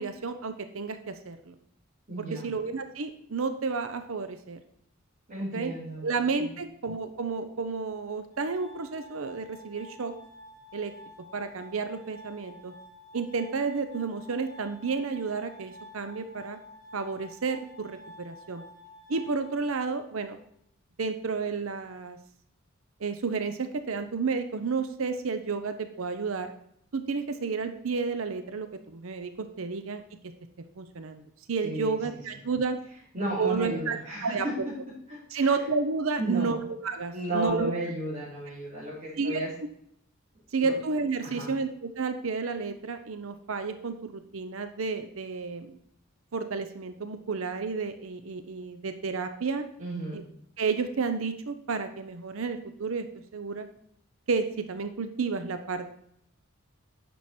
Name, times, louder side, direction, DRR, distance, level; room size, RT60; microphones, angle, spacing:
voice 1, 0.0-1.5 2.3-4.6 5.5-5.7 6.0-10.1 10.7-10.9 11.3-12.7 13.1-16.6 16.9-18.6 19.1-20.4 21.0-22.2 23.0-26.5 26.9-30.3 30.8-31.2 31.5-32.8 33.4-34.7 35.3-37.7 39.2-39.4 40.5-45.8 46.3-49.7 50.1-50.2 50.6-53.1 53.3-53.7 54.3-55.9, right 4 dB, 70° right, 9 dB, 0.7 m, -31 dB
voice 2, 2.1-2.5 5.3-6.0 6.4-6.5 31.6-32.0 33.1-34.5 35.1-35.6 36.2-36.6 37.1-39.5 40.6-40.7 41.2-41.5 49.8-50.2, right 1 dB, 40° right, -10 dB, 3.4 m, -33 dB
Glass, 8.3-20.3, left 1 dB, 15° left, 2.8 m, -50 dB
9.3 x 6.3 x 4.3 m, 0.69 s
head